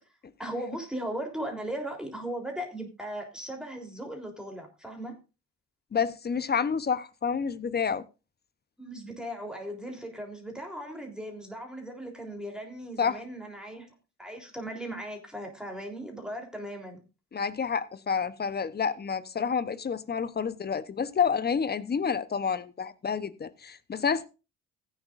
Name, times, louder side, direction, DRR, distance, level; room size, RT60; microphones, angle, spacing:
voice 1, 0.4-5.1 8.8-13.9 14.2-17.0, right 1 dB, ahead, 3.6 m, -37 dB
voice 2, 5.9-8.0 13.0-13.2 17.3-24.3, left 6 dB, 30° left, 0.9 m, -29 dB
16.0 x 9.8 x 2.6 m
supercardioid pair, 80°, 33 cm